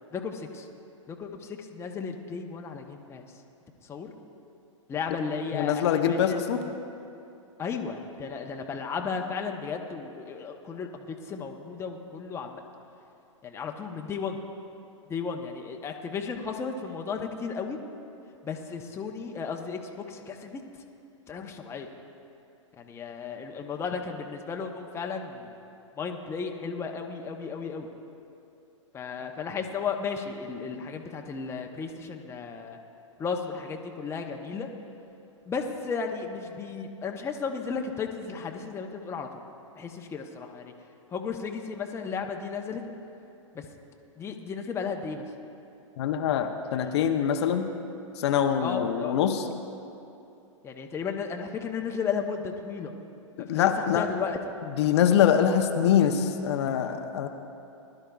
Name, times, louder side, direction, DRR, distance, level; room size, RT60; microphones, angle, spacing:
voice 1, 0.1-0.7 1.1-3.3 3.8-4.1 4.9-6.7 7.6-12.6 13.4-14.4 15.1-17.8 18.4-20.6 21.3-21.9 22.8-25.5 26.0-27.9 28.9-32.8 33.2-34.7 35.5-39.4 39.7-40.7 41.1-42.8 43.5-43.7 44.2-45.3 46.8-47.0 48.6-49.2 50.6-52.9 53.4-54.4, left 5 dB, 15° left, 3 dB, 0.8 m, -34 dB
voice 2, 5.5-6.6 46.0-47.7 48.2-49.4 53.4-54.1 54.8-57.3, left 8 dB, 55° left, 6 dB, 0.7 m, -24 dB
20.0 x 11.5 x 2.3 m, 2.7 s
hypercardioid pair, 120°, 16 cm